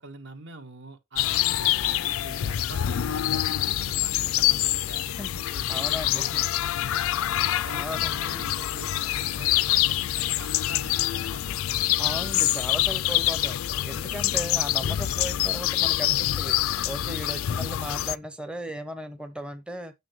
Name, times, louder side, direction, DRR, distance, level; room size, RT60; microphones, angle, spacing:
voice 1, 0.0-5.1 5.4-6.3 7.0-7.3 7.6-12.0, right 2 dB, 60° right, 1.4 m, -45 dB
sound 1, 1.2-18.1, left 13 dB, 90° left, 0.4 m, -26 dB
voice 2, 5.2-6.4 7.7-8.2 12.0-19.9, equal, 5° right, 0.6 m, -37 dB
8.8 x 6.7 x 3.1 m
head